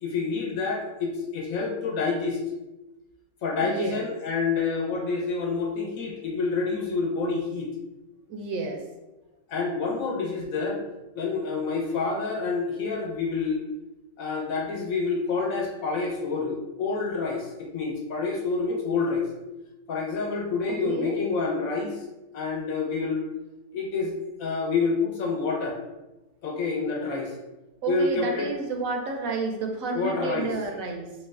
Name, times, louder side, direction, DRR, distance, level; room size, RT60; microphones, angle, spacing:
voice 1, 0.0-2.4 3.4-7.7 9.5-10.8 11.1-13.6 14.2-19.3 19.9-22.0 22.3-23.2 23.7-25.8 26.4-27.3 27.9-28.5 29.9-30.5, left 4 dB, 70° left, 0 dB, 1.1 m, -28 dB
voice 2, 3.6-4.1 8.3-8.8 20.7-21.2 27.8-31.1, right 3 dB, 75° right, 2 dB, 1.0 m, -31 dB
3.1 x 3.1 x 2.3 m, 1.0 s
omnidirectional pair, 1.5 m